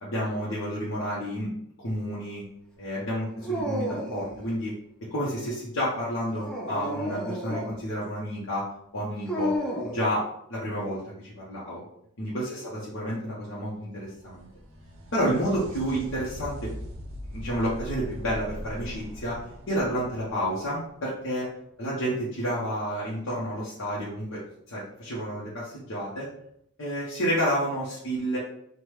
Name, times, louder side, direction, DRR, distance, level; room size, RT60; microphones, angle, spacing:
voice 1, 0.0-1.5 1.8-2.4 2.8-4.7 5.1-8.6 8.9-9.5 9.9-11.8 12.2-12.5 12.9-14.5 15.1-16.7 17.3-19.4 19.7-21.5 21.8-24.4 24.7-26.3 26.8-28.4, equal, 65° left, -7 dB, 0.8 m, -30 dB
Dog, 3.4-4.4 6.3-7.8 9.3-10.0, equal, 5° left, 0.4 m, -31 dB
sound 1, 13.9-21.5 24.8-24.9 26.0-26.1, equal, 75° right, 0.6 m, -41 dB
3.3 x 2.1 x 3.1 m, 0.71 s
head